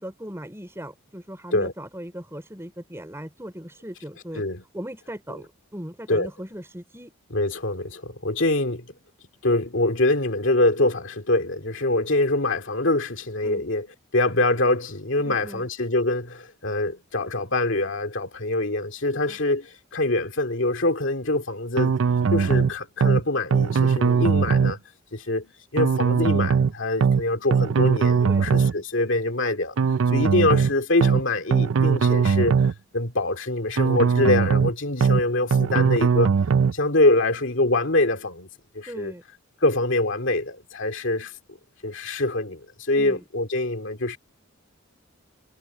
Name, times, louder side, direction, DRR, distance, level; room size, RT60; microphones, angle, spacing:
voice 1, 0.0-4.4 4.7-7.1 13.4-13.7 15.2-15.7 19.3-19.4 28.3-28.6 38.9-39.2 43.0-43.2, equal, 10° right, 4.1 m, -38 dB
voice 2, 7.3-8.9 9.4-13.9 14.1-22.0 22.3-24.8 25.1-29.8 30.1-32.5 32.9-36.3 36.7-38.5 38.7-39.1 39.6-41.3 41.8-44.2, left 2 dB, 60° left, 2.4 m, -24 dB
sound 1, 21.8-22.7 23.0-23.2 23.5-24.7 25.8-26.7 27.0-27.2 27.5-28.7 29.8-30.7 31.0-31.2 31.5-32.7 33.8-34.7 35.0-35.2 35.5-36.7, right 6 dB, 70° right, 0.4 m, -20 dB
head